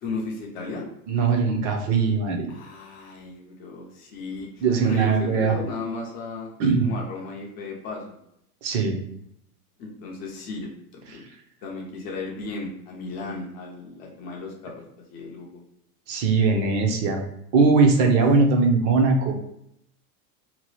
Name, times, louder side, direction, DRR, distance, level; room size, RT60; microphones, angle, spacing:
voice 1, 0.0-0.9 2.5-6.5 6.8-8.1 9.8-10.7 11.0-11.2 11.6-14.9 15.1-15.6 18.1-18.2, left 3 dB, 20° left, -1 dB, 0.3 m, -35 dB
voice 2, 1.1-2.5 4.6-5.6 6.6-6.9 8.6-9.0 16.1-17.2 17.5-19.3, right 4 dB, 35° right, 4 dB, 0.6 m, -20 dB
2.9 x 2.2 x 3.1 m, 0.77 s
supercardioid pair, 140°, 45 cm